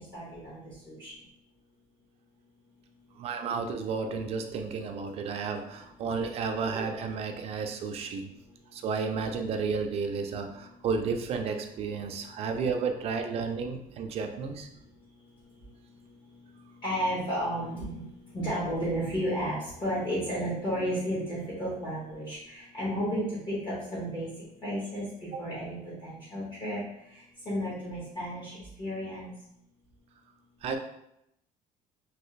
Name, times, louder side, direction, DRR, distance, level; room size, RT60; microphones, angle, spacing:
voice 1, 0.1-0.6 0.9-1.1 16.8-18.0 18.3-24.3 24.6-25.0 25.4-25.8 26.0-26.8 27.5-28.5 28.8-29.3, equal, 30° left, -9 dB, 1.2 m, -32 dB
voice 2, 3.2-8.3 8.7-14.7 25.3-25.4 30.6-30.8, right 5 dB, 45° right, 5 dB, 0.4 m, -32 dB
3.2 x 2.8 x 3.1 m, 0.80 s
cardioid pair, 155°, 15 cm